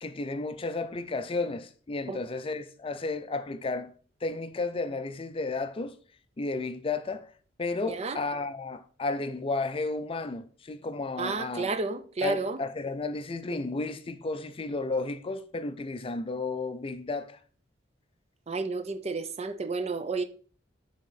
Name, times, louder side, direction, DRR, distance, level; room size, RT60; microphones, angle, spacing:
voice 1, 0.0-3.9 4.2-6.0 6.4-7.3 7.6-11.7 12.2-17.4, left 3 dB, 30° left, 0.4 m, -33 dB
voice 2, 7.9-8.2 11.2-12.6 18.5-20.2, right 3 dB, 35° right, 0.5 m, -31 dB
6.7 x 3.7 x 5.5 m
head